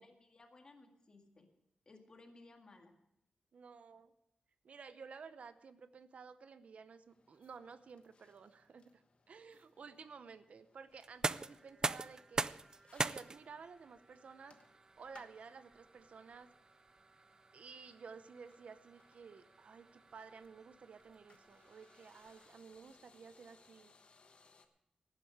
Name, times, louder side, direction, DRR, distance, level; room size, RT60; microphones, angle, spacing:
voice 1, 0.0-1.5 1.9-3.0 9.5-9.7, left 2 dB, 35° left, 3 dB, 2.0 m, -60 dB
voice 2, 3.5-4.1 4.6-12.6 12.9-14.6 15.0-16.5 17.5-23.9, right 5 dB, 65° right, 12 dB, 0.8 m, -54 dB
sound 1, 7.1-24.7, left 4 dB, 50° left, 1.3 m, -69 dB
sound 2, 11.0-22.8, right 3 dB, 30° right, 0.4 m, -44 dB
17.5 x 10.0 x 4.9 m, 0.85 s
wide cardioid pair, 155°, 2 cm